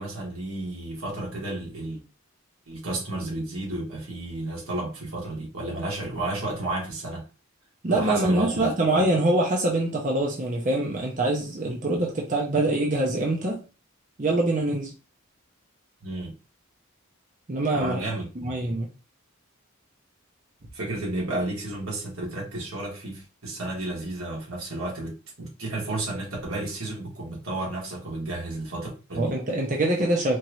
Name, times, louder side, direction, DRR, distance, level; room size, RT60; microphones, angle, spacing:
voice 1, 0.0-2.0 2.7-7.2 7.9-9.1 16.0-16.3 17.7-18.7 20.7-29.3, right 2 dB, 90° right, 2.0 m, -32 dB
voice 2, 7.8-13.6 14.2-14.9 17.5-18.0 18.4-18.9 29.2-30.4, right 2 dB, 35° right, 0.7 m, -24 dB
4.5 x 2.5 x 3.0 m
head